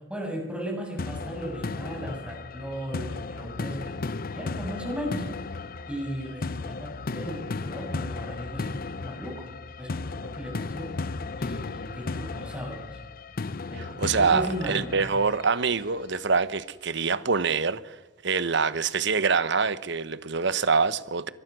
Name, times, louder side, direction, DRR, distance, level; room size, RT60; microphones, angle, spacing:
voice 1, 0.0-5.6 5.9-9.5 9.8-10.9 11.4-13.0 13.7-13.8 14.2-15.0, equal, 5° right, 6.7 m, -36 dB
sound 1, 1.0-15.9, left 3 dB, 50° left, 0.7 m, -35 dB
voice 2, 14.0-18.0 18.2-21.3, right 5 dB, 65° right, 1.0 m, -25 dB
24.0 x 19.0 x 6.2 m
head